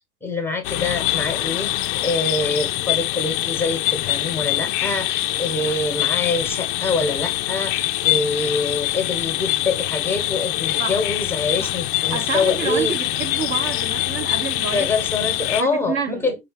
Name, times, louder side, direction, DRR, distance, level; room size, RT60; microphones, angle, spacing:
voice 1, 0.2-1.7 2.0-12.9 14.7-16.4, left 3 dB, 5° left, 1.2 m, -25 dB
sound 1, 0.6-15.6, left 16 dB, 35° left, 0.4 m, -24 dB
voice 2, 12.1-14.9 15.6-16.3, right 6 dB, 25° right, 1.0 m, -28 dB
4.9 x 2.6 x 3.6 m
hypercardioid pair, 130°, 47 cm